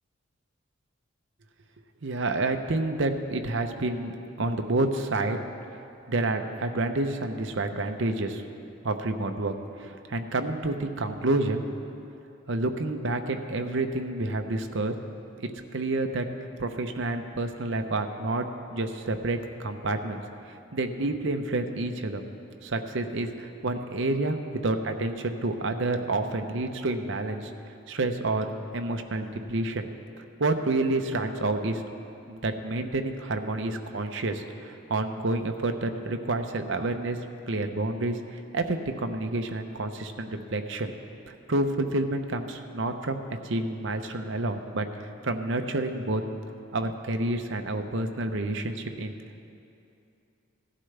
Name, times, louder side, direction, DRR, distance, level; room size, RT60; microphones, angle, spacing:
voice 1, 2.0-4.1 4.4-5.4 6.1-8.4 8.8-9.5 9.8-11.6 12.5-14.9 15.4-16.3 16.6-20.2 20.5-22.2 22.6-24.4 24.6-27.5 27.9-29.9 30.4-31.8 32.3-37.2 37.5-40.9 41.3-46.2 46.7-49.1, right 2 dB, 60° right, 6 dB, 0.8 m, -29 dB
17.0 x 11.5 x 3.3 m, 2.7 s
head